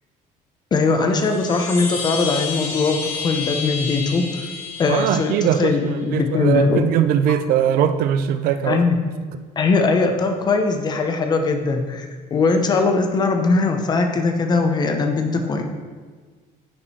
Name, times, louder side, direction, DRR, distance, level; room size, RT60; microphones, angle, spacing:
voice 1, 0.7-4.5 4.8-6.8 8.7-9.0 9.6-15.6, left 4 dB, 25° left, 5 dB, 0.8 m, -20 dB
Chime, 1.1-5.8, left 5 dB, 90° left, 2.3 m, -30 dB
voice 2, 4.9-8.8, right 9 dB, 65° right, 10 dB, 0.5 m, -20 dB
11.0 x 5.1 x 4.3 m, 1.5 s
cardioid pair, 170°, 16 cm